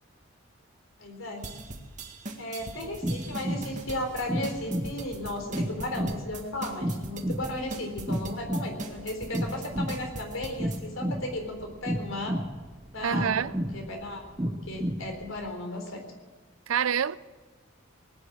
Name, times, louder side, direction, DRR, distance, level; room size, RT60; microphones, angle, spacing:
voice 1, 1.0-1.5 2.4-12.3 12.9-13.4 13.7-16.0, left 1 dB, 70° left, 3.9 m, -35 dB
sound 1, 1.4-10.8, right 2 dB, 40° right, 1.9 m, -40 dB
sound 2, 2.6-15.5, equal, 15° right, 0.7 m, -33 dB
voice 2, 13.0-13.5 16.7-17.2, right 8 dB, 90° right, 0.5 m, -26 dB
19.5 x 9.7 x 7.4 m
head